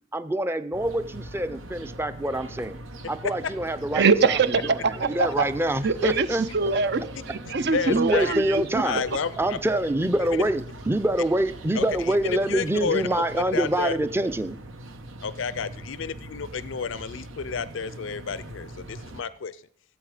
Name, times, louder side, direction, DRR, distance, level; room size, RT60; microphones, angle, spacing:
voice 1, 0.1-2.8 3.1-6.4 7.6-7.7 7.9-9.0 9.4-14.6, right 1 dB, 10° right, 12 dB, 0.5 m, -26 dB
sound 1, 0.7-19.2, right 1 dB, 90° right, 1.2 m, -41 dB
voice 2, 3.9-5.3 5.8-6.3 6.5-8.8, right 4 dB, 60° right, 13 dB, 0.6 m, -23 dB
voice 3, 7.7-8.3 8.8-9.6 10.3-10.4 11.7-13.9 15.2-19.6, left 5 dB, 75° left, 16 dB, 0.5 m, -30 dB
15.5 x 7.9 x 4.9 m, 0.65 s
head